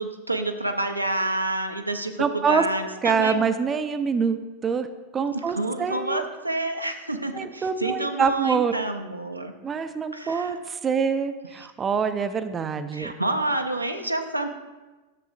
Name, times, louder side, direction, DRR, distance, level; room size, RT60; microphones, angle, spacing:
voice 1, 0.0-3.4 5.3-9.5 10.1-10.6 12.9-14.5, right 2 dB, 85° right, 4 dB, 0.6 m, -28 dB
voice 2, 2.2-2.6 3.0-4.9 5.1-6.3 7.3-8.8 9.6-13.1, right 6 dB, 20° right, 10 dB, 0.4 m, -25 dB
10.5 x 6.9 x 2.5 m, 1.2 s
figure-of-eight pair, 90°, 0 cm